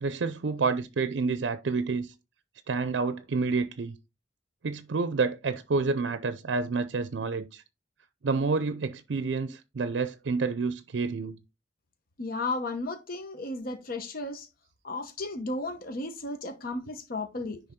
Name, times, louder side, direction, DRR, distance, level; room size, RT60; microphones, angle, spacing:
voice 1, 0.0-2.1 2.7-4.0 4.6-7.6 8.2-11.3, right 4 dB, 75° right, 0.5 m, -29 dB
voice 2, 12.2-14.5 14.8-17.6, left 2 dB, 55° left, 0.8 m, -34 dB
10.0 x 3.4 x 3.7 m
head